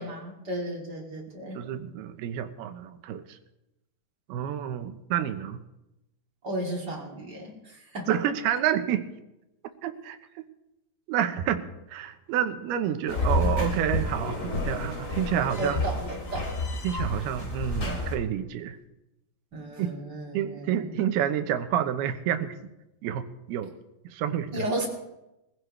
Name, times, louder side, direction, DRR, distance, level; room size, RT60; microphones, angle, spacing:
voice 1, 0.0-1.6 6.4-8.2 15.6-16.5 19.5-21.0 24.5-24.9, right 1 dB, 25° right, -2 dB, 3.1 m, -34 dB
voice 2, 1.5-3.4 4.3-5.6 8.1-9.1 9.8-10.2 11.1-15.8 16.8-18.8 19.8-19.9 20.3-22.5 23.0-23.2 23.5-23.7 24.0-24.6, right 10 dB, 75° right, 8 dB, 2.8 m, -29 dB
sound 1, 13.1-18.1, left 2 dB, 25° left, 2.2 m, -30 dB
23.0 x 16.0 x 3.3 m, 0.93 s
omnidirectional pair, 4.8 m